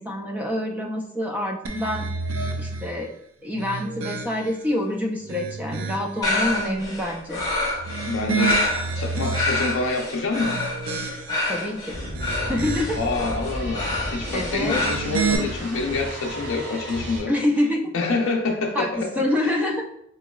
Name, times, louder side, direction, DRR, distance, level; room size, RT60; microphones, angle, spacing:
voice 1, 0.0-2.1 2.6-3.1 3.4-7.4 11.5-12.0 12.4-13.1 14.3-14.8 17.3-17.9 18.7-19.8, left 1 dB, 10° right, 1 dB, 0.3 m, -26 dB
sound 1, 1.7-3.0 3.5-4.6 5.1-6.2 7.7-9.9 10.4-11.5 12.0-13.1 14.6-15.4, right 5 dB, 80° right, 0.4 m, -30 dB
sound 2, 6.2-14.9, left 2 dB, 20° left, 0.7 m, -27 dB
voice 2, 8.1-10.6 13.0-17.3 17.9-19.2, left 3 dB, 75° left, 1 dB, 0.5 m, -27 dB
sound 3, 11.9-17.2, equal, 65° right, 1.0 m, -33 dB
3.7 x 3.0 x 2.3 m, 0.74 s
head